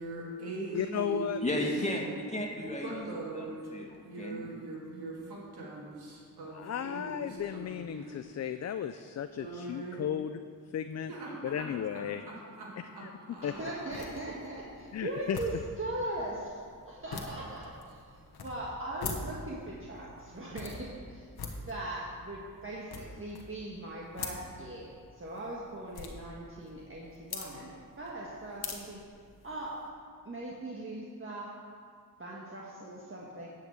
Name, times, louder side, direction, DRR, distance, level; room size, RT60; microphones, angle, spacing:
voice 1, 0.0-1.5 2.8-3.6 4.0-7.3 7.5-8.2 9.4-10.0 11.1-11.7 12.3-13.9, right 2 dB, 85° right, -4 dB, 2.6 m, -41 dB
voice 2, 0.7-2.0 6.5-10.4 10.7-11.1 11.4-12.3 12.8-13.5 14.9-15.4, left 9 dB, 45° left, 10 dB, 0.4 m, -35 dB
voice 3, 1.4-3.1 3.3-4.5, left 1 dB, 20° left, -1 dB, 2.2 m, -34 dB
sound 1, 13.4-29.9, left 4 dB, 80° left, 1.3 m, -45 dB
voice 4, 13.4-15.5 15.8-18.0 18.4-21.3 21.7-29.0 29.4-29.8 30.2-31.5 32.2-33.5, right 1 dB, 35° right, -5 dB, 1.6 m, -40 dB
10.0 x 5.8 x 7.9 m, 2.1 s
cardioid pair, 55°, 38 cm